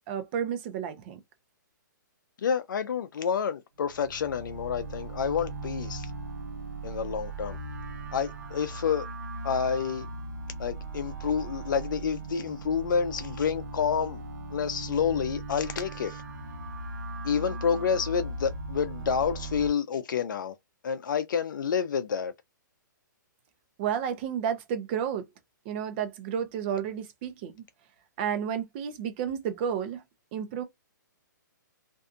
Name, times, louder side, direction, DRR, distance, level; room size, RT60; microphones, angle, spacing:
voice 1, 0.1-1.2 23.8-25.2 25.7-27.6 28.2-30.0 30.3-30.6, right 8 dB, 35° right, 0.6 m, -31 dB
voice 2, 2.4-6.1 6.8-7.6 8.1-9.1 9.4-10.1 10.6-14.2 14.5-16.2 17.2-20.6 20.8-22.3, left 7 dB, 70° left, 0.5 m, -29 dB
sound 1, 3.8-19.7, right 2 dB, 65° right, 0.9 m, -38 dB
2.6 x 2.3 x 2.5 m
hypercardioid pair, 150°, 11 cm